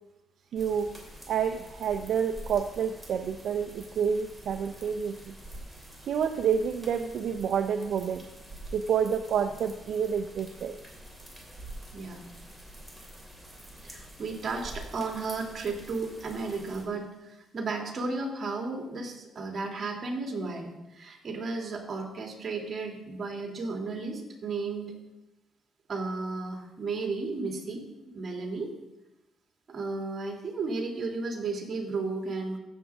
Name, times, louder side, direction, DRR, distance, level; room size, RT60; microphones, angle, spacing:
voice 1, 0.5-0.9 1.3-5.3 6.1-8.2 8.7-10.7, right 7 dB, 70° right, 7 dB, 0.5 m, -29 dB
sound 1, 0.6-16.9, right 1 dB, ahead, 3.2 m, -47 dB
voice 2, 11.9-12.2 13.8-24.9 25.9-27.8 28.1-28.7 29.7-32.6, right 3 dB, 45° right, 1 dB, 2.4 m, -34 dB
15.0 x 7.3 x 3.5 m, 0.96 s
cardioid pair, 90°, 0 cm